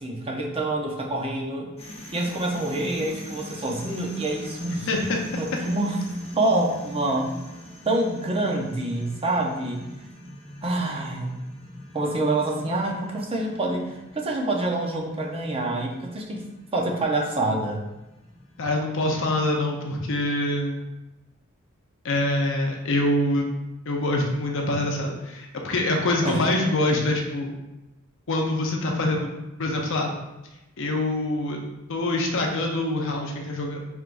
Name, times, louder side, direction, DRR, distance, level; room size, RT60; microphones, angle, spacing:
voice 1, 0.0-1.7 2.1-4.9 5.4-6.0 6.3-7.3 7.9-9.8 10.6-11.4 11.9-16.4 16.7-17.8 26.2-26.4, right 2 dB, 25° right, 0 dB, 0.7 m, -26 dB
sound 1, 1.8-20.2, equal, 30° left, 1.0 m, -41 dB
voice 2, 4.9-5.2 18.6-20.8 22.0-23.5 23.9-27.6 28.3-29.3 29.6-30.1 30.8-31.6 31.9-33.8, left 1 dB, 60° left, 1 dB, 0.7 m, -25 dB
4.6 x 3.4 x 2.5 m, 1.0 s
head